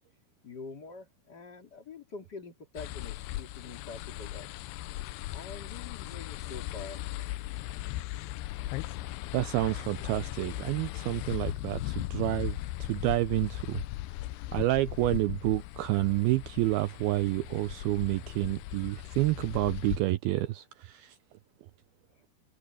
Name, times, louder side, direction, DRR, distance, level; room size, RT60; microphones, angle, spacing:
voice 1, 0.4-4.7 5.3-7.1 22.1-22.2, left 4 dB, 30° left, 2.6 m, -45 dB
sound 1, 2.8-20.0, left 16 dB, 80° left, 2.4 m, -38 dB
voice 2, 9.3-13.8 14.5-21.2, right 18 dB, 85° right, 2.2 m, -29 dB
omnidirectional pair, 5.0 m